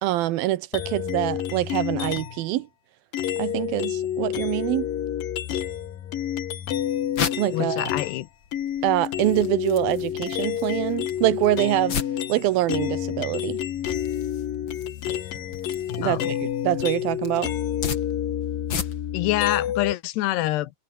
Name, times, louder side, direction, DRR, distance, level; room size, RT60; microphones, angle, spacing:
voice 1, 0.0-2.7 3.4-4.9 7.4-7.9 8.8-12.0 12.3-13.6 16.0-17.5, right 16 dB, 75° right, 2.3 m, -25 dB
sound 1, 0.7-2.5 3.1-8.2 8.5-19.9, left 10 dB, 60° left, 3.3 m, -29 dB
sound 2, 6.5-19.3, left 6 dB, 40° left, 2.0 m, -37 dB
voice 2, 7.5-8.3 16.0-16.3 19.1-20.7, left 16 dB, 75° left, 2.9 m, -26 dB
omnidirectional pair, 5.1 m